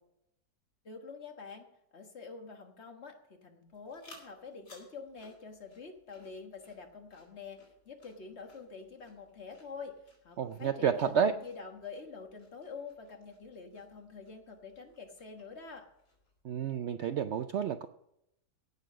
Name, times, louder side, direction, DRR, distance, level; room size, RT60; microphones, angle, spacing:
voice 1, 0.9-1.7 1.9-9.9 10.2-15.9, left 5 dB, 40° left, 4 dB, 1.6 m, -46 dB
sound 1, 3.7-16.4, left 2 dB, 65° left, 5.2 m, -62 dB
voice 2, 10.4-11.3 16.4-17.9, right 8 dB, 85° right, 10 dB, 0.6 m, -30 dB
17.0 x 6.7 x 6.3 m, 0.82 s
omnidirectional pair, 1.8 m